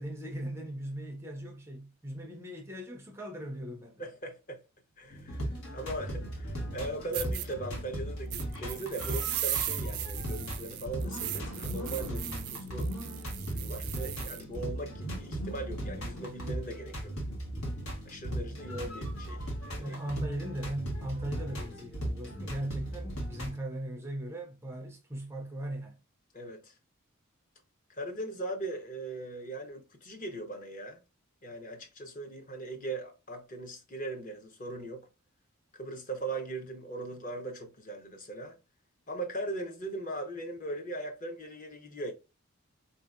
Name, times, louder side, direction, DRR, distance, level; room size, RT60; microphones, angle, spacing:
voice 1, 0.0-4.0 19.8-26.0, right 1 dB, 10° right, 0.4 m, -38 dB
voice 2, 4.0-4.6 5.0-12.9 13.4-17.1 18.0-20.0 26.3-26.7 27.9-31.0 31.4-35.1 35.8-38.6 39.1-42.1, right 2 dB, 35° left, 0.7 m, -39 dB
sound 1, 5.1-23.6, right 1 dB, 85° left, 1.2 m, -37 dB
sound 2, 5.1-18.4, right 1 dB, 65° left, 1.5 m, -48 dB
sound 3, 6.7-6.8 7.1-7.5 8.3-14.4, right 15 dB, 85° right, 0.4 m, -37 dB
4.0 x 2.7 x 2.3 m
head